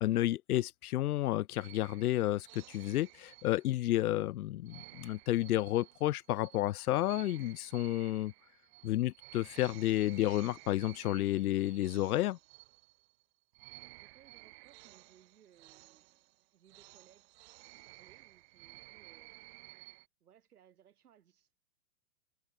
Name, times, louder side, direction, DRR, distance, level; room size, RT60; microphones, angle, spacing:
voice 1, 0.0-8.3 8.8-12.4, left 15 dB, 75° left, 0.7 m, -31 dB
sound 1, 1.5-4.0 4.6-13.2 13.5-20.1, right 23 dB, 45° right, 1.5 m, -55 dB
voice 2, 13.9-16.2 16.5-17.3 17.7-19.9 20.2-21.5, right 9 dB, 80° right, 5.4 m, -65 dB
hypercardioid pair, 135°, 45 cm